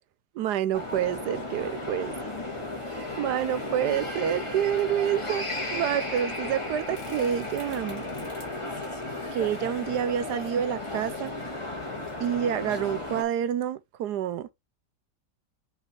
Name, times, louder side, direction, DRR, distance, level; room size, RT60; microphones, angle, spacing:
voice 1, 0.3-2.3 2.9-5.4 5.7-8.0 9.3-11.3 12.2-14.5, right 10 dB, 75° right, 1.2 m, -28 dB
sound 1, 0.7-13.2, left 2 dB, 20° left, 1.8 m, -34 dB
5.7 x 5.3 x 3.3 m
omnidirectional pair, 1.8 m